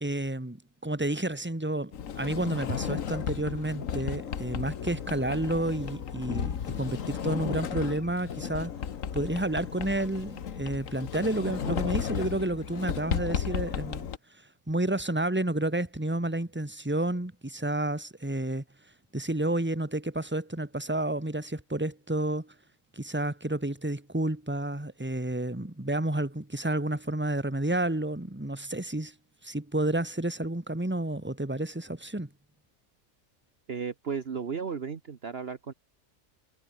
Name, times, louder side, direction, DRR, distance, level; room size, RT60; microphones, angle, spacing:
voice 1, 0.0-8.7 9.1-14.1 14.7-18.6 19.1-22.5 22.9-29.1 29.4-32.3, right 1 dB, 10° right, 2.0 m, -30 dB
Sliding door, 1.9-14.2, left 8 dB, 70° left, 1.6 m, -34 dB
voice 2, 33.7-35.7, right 6 dB, 45° right, 1.4 m, -34 dB
omnidirectional pair, 1.4 m